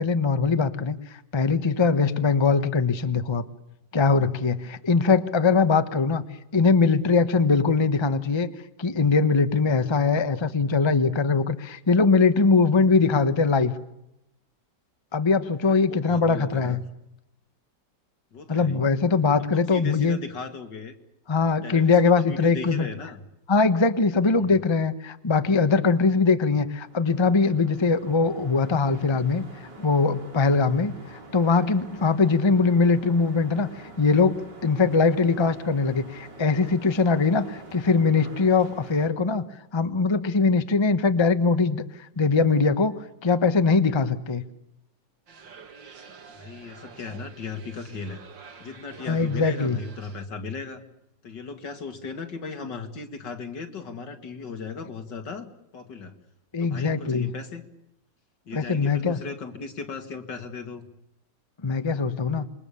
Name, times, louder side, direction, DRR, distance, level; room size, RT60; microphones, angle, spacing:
voice 1, 0.0-3.4 3.9-6.2 6.5-8.5 8.8-13.7 15.1-16.8 18.5-20.2 21.3-22.9 23.5-29.4 29.8-39.4 39.7-41.8 42.2-42.9 43.2-44.4 49.1-49.8 56.5-57.3 58.5-59.2 61.6-62.4, left 4 dB, 20° left, 10 dB, 1.0 m, -21 dB
voice 2, 15.7-16.8 18.3-18.8 19.5-20.9 21.6-23.2 24.2-24.5 46.3-48.2 48.6-50.8 51.2-56.1 56.6-57.6 58.5-60.8, left 4 dB, 75° left, 7 dB, 2.9 m, -37 dB
sound 1, 26.5-39.1, right 2 dB, 70° right, 5.0 m, -46 dB
sound 2, 45.3-50.2, right 5 dB, 90° right, 2.7 m, -48 dB
27.0 x 23.0 x 7.0 m, 0.84 s
omnidirectional pair, 1.9 m